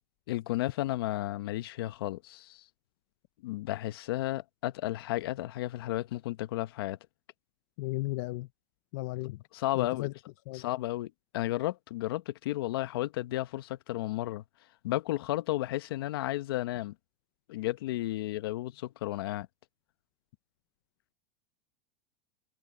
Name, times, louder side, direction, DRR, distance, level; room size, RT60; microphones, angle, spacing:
voice 1, 0.3-2.6 3.4-7.0 9.5-10.1 10.5-14.4 14.8-16.9 17.5-19.5, left 16 dB, 65° left, 0.9 m, -33 dB
voice 2, 7.8-8.5 8.9-9.4 9.8-10.1 10.5-10.6, left 20 dB, 45° left, 0.6 m, -34 dB
supercardioid pair, 170°, 13 cm